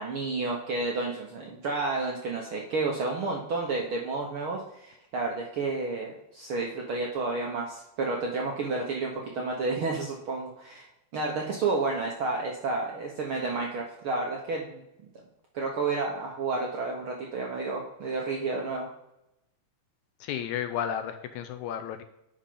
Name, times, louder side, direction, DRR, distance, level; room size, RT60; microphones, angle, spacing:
voice 1, 0.0-10.9 11.1-14.8 15.5-18.9, right 3 dB, 65° right, -1 dB, 1.3 m, -31 dB
voice 2, 20.2-22.0, left 9 dB, 80° left, 8 dB, 1.8 m, -33 dB
10.0 x 5.7 x 3.7 m, 0.87 s
omnidirectional pair, 3.7 m